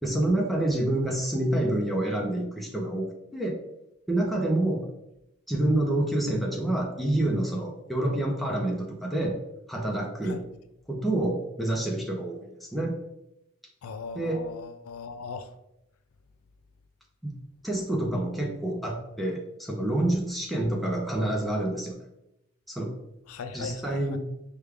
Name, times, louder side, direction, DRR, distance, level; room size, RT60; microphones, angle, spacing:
voice 1, 0.0-3.1 3.3-3.5 4.1-4.8 5.5-9.4 9.7-10.4 10.9-12.9 14.1-14.4 17.2-17.3 17.6-22.0 22.7-22.9 23.5-24.2, right 1 dB, ahead, 0.6 m, -27 dB
voice 2, 13.8-15.5 23.3-24.2, left 5 dB, 85° left, 0.4 m, -39 dB
5.0 x 2.3 x 3.3 m
head